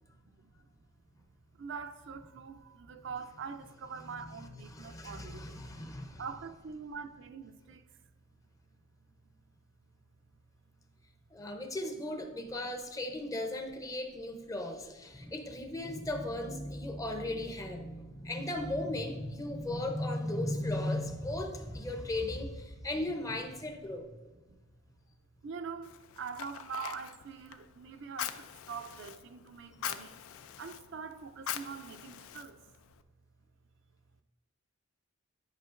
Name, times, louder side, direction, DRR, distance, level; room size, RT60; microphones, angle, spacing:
voice 1, 0.1-0.9 1.5-8.1 9.0-9.3 15.1-15.3 16.8-16.9 17.9-18.3 19.4-19.7 20.1-20.2 23.9-24.1 24.5-24.6 25.4-30.2 30.6-32.6, right 5 dB, 60° right, 0.4 m, -44 dB
voice 2, 4.5-6.2 11.3-24.2, left 1 dB, 15° left, 0.6 m, -36 dB
Fire, 25.8-33.0, left 10 dB, 80° left, 0.4 m, -43 dB
10.5 x 5.6 x 2.5 m
head